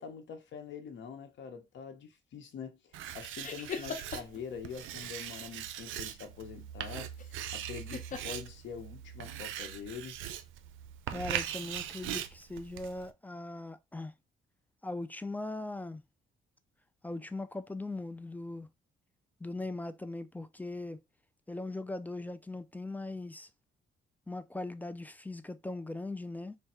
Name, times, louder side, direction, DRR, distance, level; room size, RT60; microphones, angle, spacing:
voice 1, 0.0-7.1 7.5-10.2, left 6 dB, 70° left, 0.9 m, -44 dB
Writing, 2.9-13.1, right 10 dB, 80° right, 0.5 m, -41 dB
sound 1, 3.4-4.4 7.1-7.5 7.9-8.2, left 5 dB, 40° left, 0.9 m, -39 dB
voice 2, 11.1-14.1 14.8-16.0 17.0-18.7 19.4-21.0 21.5-23.5 24.3-26.6, left 2 dB, 10° left, 0.3 m, -39 dB
3.3 x 2.2 x 4.2 m
cardioid pair, 90°, 20 cm